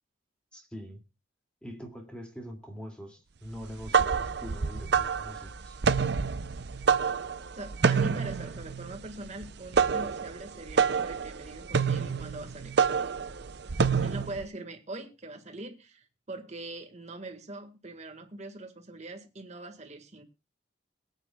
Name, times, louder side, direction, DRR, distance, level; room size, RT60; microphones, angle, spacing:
voice 1, 0.5-1.0 1.6-5.8, equal, 5° left, 2.3 m, -43 dB
sound 1, 3.6-14.4, right 6 dB, 60° right, 0.6 m, -27 dB
voice 2, 7.6-12.8 14.0-20.2, right 2 dB, 35° right, 1.7 m, -42 dB
22.0 x 9.1 x 2.3 m
head